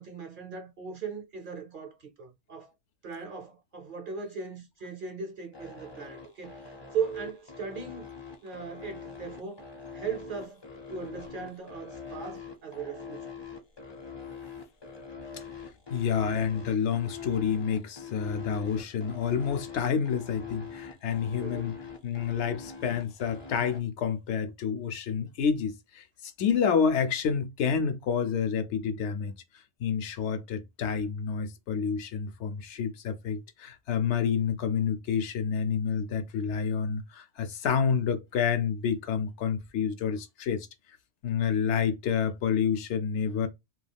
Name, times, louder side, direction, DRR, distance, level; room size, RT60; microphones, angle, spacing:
voice 1, 0.0-2.7 3.0-8.1 8.4-9.6 9.9-10.6 10.9-13.3 21.4-21.8, right 6 dB, 55° right, 0.6 m, -38 dB
sound 1, 5.5-23.8, left 6 dB, 35° left, 0.5 m, -42 dB
voice 2, 15.9-21.7 22.0-26.0 26.4-29.3 29.8-40.7 41.2-43.5, left 7 dB, 75° left, 0.8 m, -29 dB
2.3 x 2.2 x 3.3 m
omnidirectional pair, 1.2 m